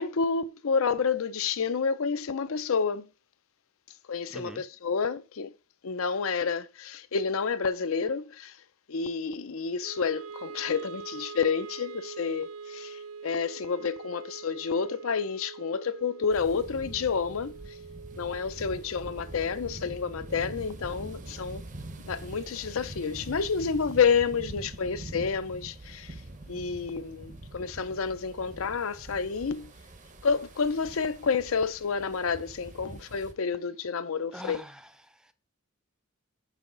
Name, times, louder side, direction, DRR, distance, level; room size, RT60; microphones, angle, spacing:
voice 1, 0.0-3.1 4.1-5.5 5.8-8.5 8.9-17.6 18.2-21.6 22.0-26.1 26.5-29.7 30.2-34.6, left 5 dB, 75° left, 0.6 m, -29 dB
voice 2, 4.3-4.6 34.3-35.3, equal, 5° right, 0.5 m, -44 dB
Wind instrument woodwind instrument, 9.8-22.1, right 5 dB, 80° right, 0.4 m, -45 dB
sound 1, 16.3-33.3, right 2 dB, 35° right, 0.7 m, -44 dB
6.9 x 5.8 x 3.8 m
head